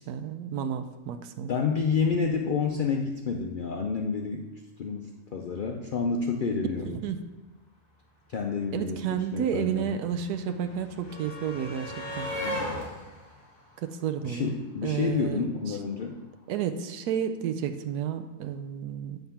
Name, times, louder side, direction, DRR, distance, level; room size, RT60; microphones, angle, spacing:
voice 1, 0.0-1.5 6.8-7.3 8.7-12.3 13.8-14.5 14.8-15.8 16.5-19.2, right 8 dB, 85° right, 9 dB, 1.1 m, -31 dB
voice 2, 1.5-4.4 4.8-7.0 8.3-9.9 12.4-12.7 14.2-16.2, left 5 dB, 80° left, 2 dB, 0.4 m, -29 dB
sound 1, 8.3-8.4 8.5-14.7 15.9-16.0 16.3-16.5, left 1 dB, 25° left, 2.5 m, -38 dB
9.1 x 3.6 x 5.6 m, 1.1 s
omnidirectional pair, 1.6 m